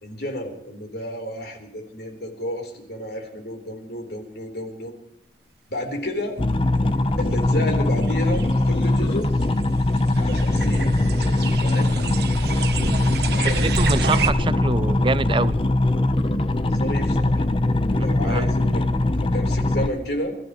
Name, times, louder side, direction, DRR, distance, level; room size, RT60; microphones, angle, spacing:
voice 1, 0.0-4.9 5.7-6.4 7.2-9.3 10.1-11.9 13.3-13.7 16.6-17.4 17.9-18.9 19.2-20.4, left 1 dB, 65° left, 3.9 m, -31 dB
sound 1, 6.4-19.9, left 2 dB, 30° left, 0.8 m, -21 dB
sound 2, 7.3-7.4 8.0-14.3, right 4 dB, 65° right, 1.2 m, -30 dB
voice 2, 13.6-15.6 18.2-18.5, right 3 dB, 30° right, 0.5 m, -25 dB
28.5 x 15.0 x 3.1 m
head